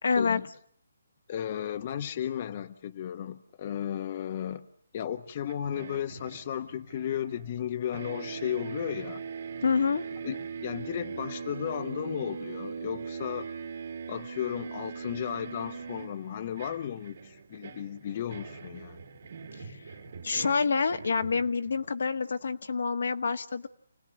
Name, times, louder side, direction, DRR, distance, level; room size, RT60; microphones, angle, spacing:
voice 1, 0.0-0.5 9.6-10.0 19.5-19.8 20.2-23.7, left 5 dB, 70° left, 8 dB, 1.6 m, -27 dB
voice 2, 1.3-4.7 4.9-9.2 10.2-13.5 14.1-19.0, left 10 dB, 40° left, 9 dB, 1.0 m, -34 dB
sound 1, 5.5-7.7 7.9-21.9, right 6 dB, 60° right, 2.9 m, -41 dB
29.0 x 18.5 x 9.8 m, 0.64 s
hypercardioid pair, 155°, 0 cm